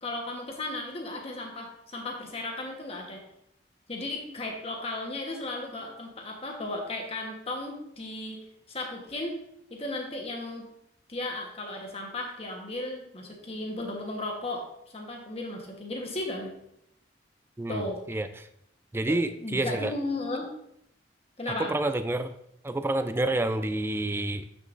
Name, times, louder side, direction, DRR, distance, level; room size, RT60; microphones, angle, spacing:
voice 1, 0.0-3.2 3.9-8.4 8.7-9.4 9.7-10.7 11.1-14.6 14.9-16.5 17.7-18.0 19.1-20.5 21.4-21.7, left 2 dB, 35° left, 1 dB, 1.2 m, -35 dB
voice 2, 17.6-18.5 18.9-19.9 21.7-22.3 22.6-24.4, right 2 dB, 15° right, 10 dB, 0.3 m, -29 dB
7.7 x 6.2 x 2.6 m, 0.76 s
head